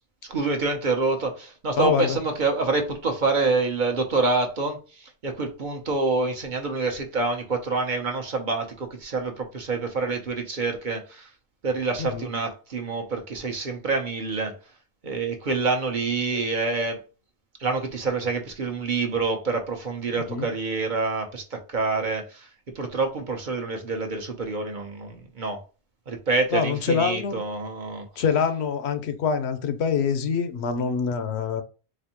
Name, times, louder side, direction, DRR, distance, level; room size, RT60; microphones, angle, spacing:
voice 1, 0.2-11.3 11.6-14.6 15.0-17.0 17.6-22.5 22.7-25.6 26.1-28.1, right 3 dB, 50° right, 0.8 m, -27 dB
voice 2, 1.8-2.2 12.0-12.3 20.1-20.5 26.5-27.4 28.2-31.6, left 6 dB, 75° left, 0.8 m, -25 dB
4.1 x 2.6 x 2.9 m
omnidirectional pair, 1.1 m